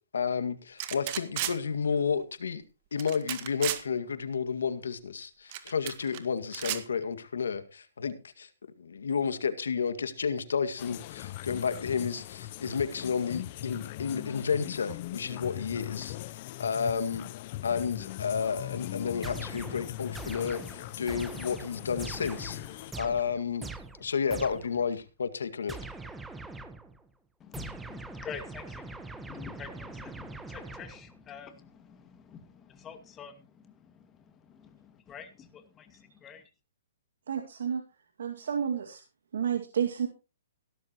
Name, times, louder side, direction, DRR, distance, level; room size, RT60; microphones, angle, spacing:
voice 1, 0.1-2.6 2.9-8.5 8.8-16.2 16.6-17.3 17.6-22.6 23.0-23.7 24.0-25.8, left 6 dB, 85° left, 10 dB, 2.0 m, -31 dB
sound 1, 0.8-1.6 3.0-3.8 5.5-6.2 6.5-6.8, right 14 dB, 40° right, 1.9 m, -33 dB
sound 2, 10.8-22.9, left 17 dB, 45° left, 0.7 m, -40 dB
sound 3, 19.2-24.9 25.7-27.0 27.5-31.2, right 3 dB, 5° right, 1.2 m, -43 dB
voice 2, 27.4-36.5, left 7 dB, 20° left, 8 dB, 2.2 m, -47 dB
voice 3, 37.3-37.8 38.2-39.0 39.3-40.1, right 8 dB, 75° right, 4 dB, 2.2 m, -30 dB
17.0 x 13.0 x 3.1 m, 0.31 s
hypercardioid pair, 145°, 0 cm